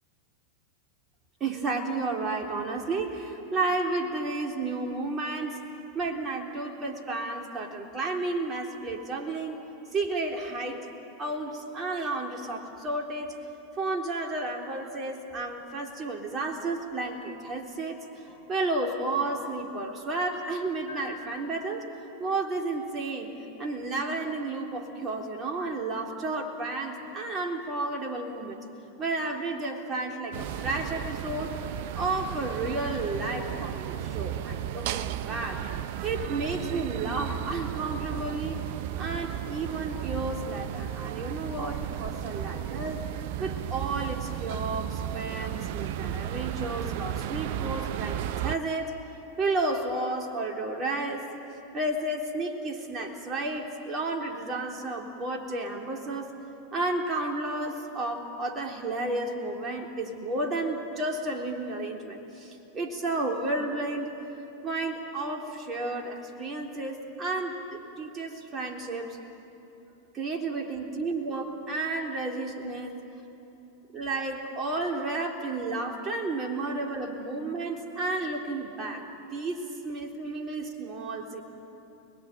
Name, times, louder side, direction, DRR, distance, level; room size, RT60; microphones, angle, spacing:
voice 1, 1.4-5.6 5.9-9.6 9.9-10.9 11.2-13.4 13.8-18.2 18.5-21.9 22.2-23.3 23.6-28.6 29.0-31.6 31.9-35.7 36.0-38.7 39.0-43.0 43.4-48.9 49.4-51.3 51.7-56.3 56.7-64.2 64.6-69.2 70.1-72.9 73.9-81.4, right 2 dB, 25° right, 2 dB, 3.6 m, -32 dB
sound 1, 16.1-16.2 17.3-17.8 18.3-18.6 19.3-19.9 20.9-21.5, left 2 dB, 70° left, 5.4 m, -48 dB
sound 2, 30.3-48.6, right 11 dB, 50° right, 0.7 m, -34 dB
30.0 x 20.5 x 9.2 m, 3.0 s
figure-of-eight pair, 90°, 0 cm